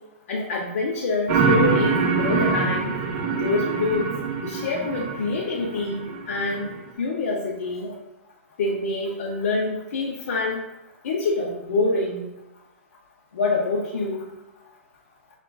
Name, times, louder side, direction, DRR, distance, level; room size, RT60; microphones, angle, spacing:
voice 1, 0.3-3.0 3.4-4.1 4.4-6.7 7.0-7.9 8.6-10.6 11.0-12.3 13.3-14.3, left 3 dB, 70° left, -2 dB, 0.6 m, -26 dB
sound 1, 1.3-6.8, right 4 dB, 35° right, 0.6 m, -24 dB
6.5 x 2.4 x 2.2 m, 1.0 s
hypercardioid pair, 140°, 8 cm